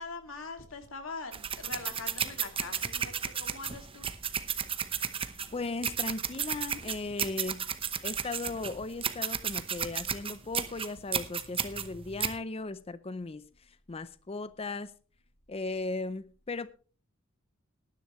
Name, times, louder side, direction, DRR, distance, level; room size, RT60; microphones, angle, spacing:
voice 1, 0.0-4.1, left 4 dB, 80° left, 2.3 m, -42 dB
sound 1, 1.3-12.4, right 7 dB, 25° right, 0.9 m, -33 dB
voice 2, 5.5-7.7 8.0-14.9 15.5-16.7, left 3 dB, 30° left, 0.6 m, -37 dB
19.0 x 10.5 x 3.1 m
head